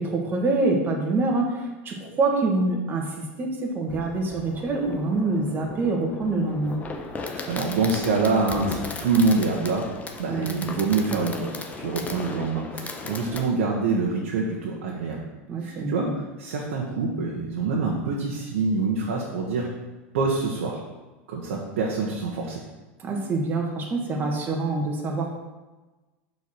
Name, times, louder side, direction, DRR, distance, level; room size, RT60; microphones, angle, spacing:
voice 1, 0.0-3.1 3.4-6.8 10.3-10.6 15.5-16.1 23.0-25.4, right 3 dB, 30° right, 0 dB, 1.7 m, -25 dB
Fireworks, 3.9-13.4, left 3 dB, 25° left, 0.9 m, -36 dB
voice 2, 7.5-9.9 10.2-15.2 15.6-16.1 16.4-19.7 20.1-20.8 21.3-22.6, right 4 dB, 85° right, -3 dB, 1.2 m, -25 dB
5.5 x 4.7 x 6.0 m, 1.2 s
supercardioid pair, 115°, 7 cm